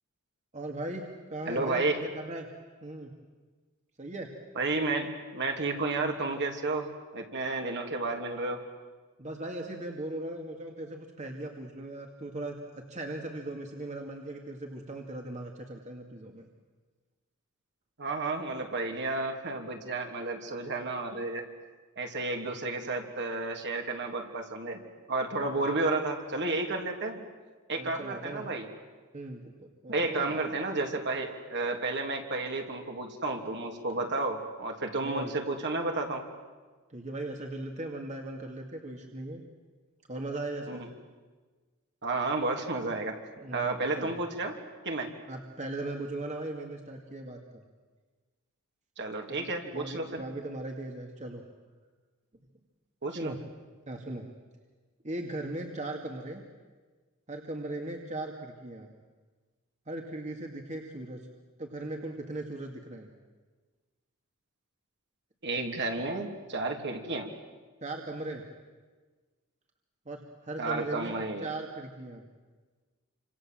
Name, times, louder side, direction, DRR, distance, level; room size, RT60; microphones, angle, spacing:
voice 1, 0.5-1.0 1.3-2.5 2.8-3.1 4.0-4.3 9.2-16.5 22.4-22.5 25.3-25.7 27.8-28.4 29.1-29.5 29.8-30.4 35.0-35.3 36.9-39.4 40.1-40.8 43.4-43.6 43.9-44.1 45.3-47.6 49.3-51.4 53.1-53.4 53.9-54.3 55.0-56.4 57.3-58.9 59.9-61.2 61.6-63.1 67.8-68.4 70.1-71.1 71.4-72.2, right 2 dB, 35° right, 2 dB, 2.3 m, -38 dB
voice 2, 1.5-2.0 4.5-8.6 18.0-21.4 22.0-24.8 25.1-27.2 27.7-28.7 29.9-36.2 40.7-40.9 42.0-43.2 43.5-44.5 44.8-45.1 49.0-50.2 53.0-53.3 65.4-67.3 70.6-71.5, right 3 dB, 55° right, 3 dB, 3.1 m, -32 dB
28.0 x 26.5 x 7.7 m, 1.4 s
head